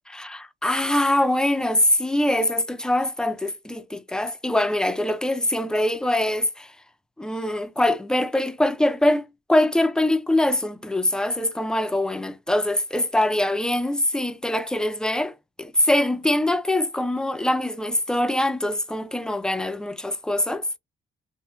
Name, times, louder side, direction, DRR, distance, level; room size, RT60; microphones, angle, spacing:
voice 1, 0.1-6.7 7.2-20.7, left 1 dB, 5° left, 0.4 m, -23 dB
3.0 x 2.6 x 2.2 m
cardioid pair, 90°, 20 cm